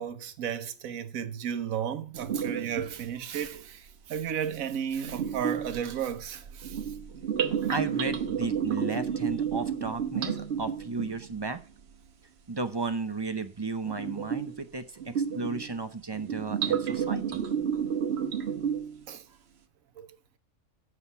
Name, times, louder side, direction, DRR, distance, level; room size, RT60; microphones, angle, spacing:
voice 1, 0.0-7.0 19.1-19.2 20.0-20.1, right 8 dB, 80° right, 1.3 m, -34 dB
sound 1, 2.2-2.8 3.5-3.6 5.0-11.4 13.9-14.6 15.0-15.8 16.1-19.0, right 7 dB, 55° right, 1.1 m, -31 dB
voice 2, 7.5-11.6 12.5-17.4, right 3 dB, 35° right, 0.4 m, -34 dB
7.9 x 5.8 x 6.8 m
omnidirectional pair, 1.4 m